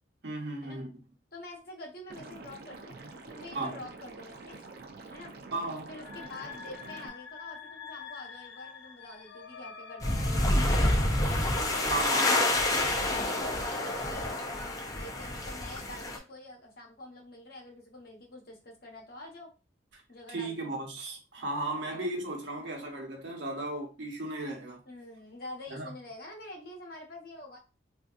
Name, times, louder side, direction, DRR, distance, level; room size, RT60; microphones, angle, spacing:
voice 1, 0.2-0.9 3.5-3.8 5.5-5.9 11.9-12.4 19.9-20.0 20.3-24.8 25.7-25.9, right 2 dB, 80° right, 0.9 m, -35 dB
voice 2, 1.3-3.0 3.3-4.6 5.1-5.3 5.9-11.4 12.4-19.5 20.1-20.8 21.9-22.1 22.7-22.9 24.9-27.6, left 1 dB, 55° left, 1.1 m, -47 dB
Liquid, 2.1-7.1, right 3 dB, 55° right, 0.5 m, -47 dB
sound 1, 6.0-14.1, left 4 dB, 80° left, 0.5 m, -45 dB
sound 2, 10.0-16.2, left 1 dB, 20° left, 0.5 m, -28 dB
3.4 x 2.6 x 2.4 m
head